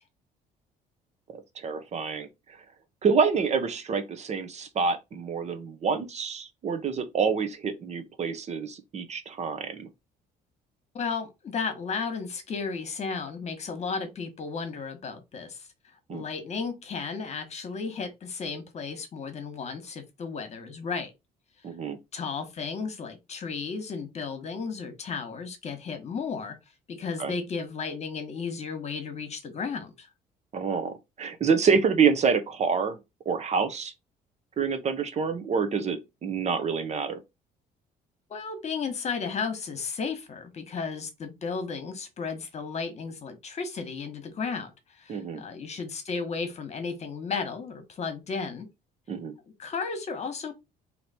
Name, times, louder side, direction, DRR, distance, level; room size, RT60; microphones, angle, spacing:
voice 1, 1.6-2.3 3.0-9.9 16.1-16.2 21.6-22.0 27.2-27.3 30.5-33.0 33.3-33.9 34.6-37.2 45.1-45.4 49.1-49.3, right 5 dB, 40° right, 0.8 m, -27 dB
voice 2, 10.9-15.7 16.1-21.1 22.1-26.6 26.9-30.1 38.3-44.7 45.0-48.7 49.6-50.5, left 5 dB, 40° left, 1.3 m, -34 dB
3.2 x 2.9 x 4.2 m
cardioid pair, 110°, 17 cm